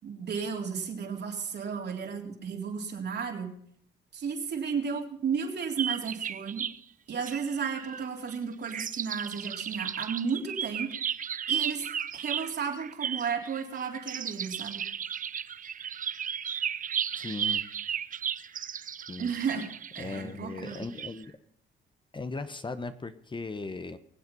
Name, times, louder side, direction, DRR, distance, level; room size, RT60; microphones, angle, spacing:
voice 1, 0.0-3.5 4.1-6.7 7.1-10.9 11.5-11.9 12.1-14.8 19.2-19.7 19.9-20.8, right 6 dB, 60° right, 2 dB, 3.7 m, -33 dB
sound 1, 5.8-6.8 7.2-8.4 8.6-21.1, right 8 dB, 40° right, 0.6 m, -34 dB
voice 2, 17.1-17.6 19.1-19.3 20.0-21.3 22.1-24.0, left 3 dB, 25° left, 11 dB, 1.1 m, -37 dB
23.5 x 8.0 x 5.5 m, 0.66 s
cardioid pair, 90°, 20 cm